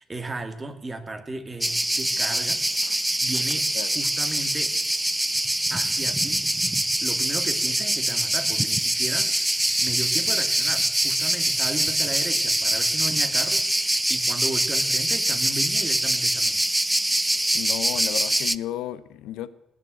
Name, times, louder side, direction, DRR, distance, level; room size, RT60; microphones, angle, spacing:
voice 1, 0.0-2.6 3.2-3.7 3.9-4.7 5.7-6.5 7.0-16.6, right 2 dB, 30° right, 9 dB, 2.3 m, -35 dB
sound 1, 1.6-18.6, right 1 dB, 10° right, 0.6 m, -24 dB
voice 2, 17.5-19.5, left 12 dB, 80° left, 15 dB, 0.8 m, -33 dB
18.5 x 7.5 x 7.7 m, 0.92 s
supercardioid pair, 65°, 0 cm